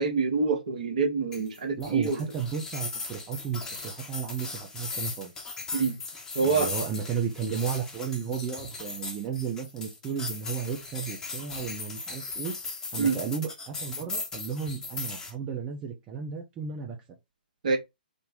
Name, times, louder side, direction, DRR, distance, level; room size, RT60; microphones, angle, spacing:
voice 1, 0.0-2.2 5.7-6.0 6.3-6.7 13.0-13.2 17.6-17.8, right 4 dB, 50° right, 1.1 m, -26 dB
sound 1, 1.3-15.3, left 4 dB, 10° left, 0.8 m, -38 dB
voice 2, 1.8-5.3 6.4-12.5 12.9-17.0, right 7 dB, 20° right, 0.8 m, -34 dB
3.9 x 2.2 x 3.6 m
figure-of-eight pair, 120°, 5 cm